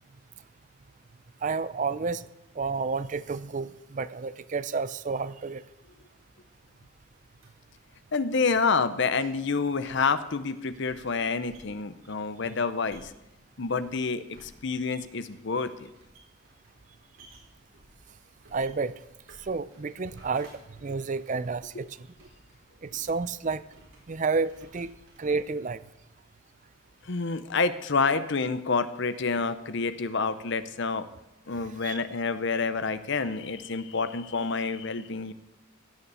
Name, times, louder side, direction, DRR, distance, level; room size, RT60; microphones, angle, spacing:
voice 1, 1.4-2.3 2.5-5.6 18.5-19.0 19.4-20.5 20.8-22.3 22.8-23.6 24.1-25.8 31.8-32.0, right 4 dB, 35° right, 15 dB, 0.4 m, -30 dB
sound 1, 6.4-25.5, right 1 dB, 75° right, 4.5 m, -58 dB
voice 2, 8.1-13.1 13.6-15.9 21.7-21.8 27.1-31.1 31.5-35.3, left 4 dB, 60° left, 12 dB, 0.7 m, -28 dB
16.5 x 6.8 x 7.0 m, 0.93 s
head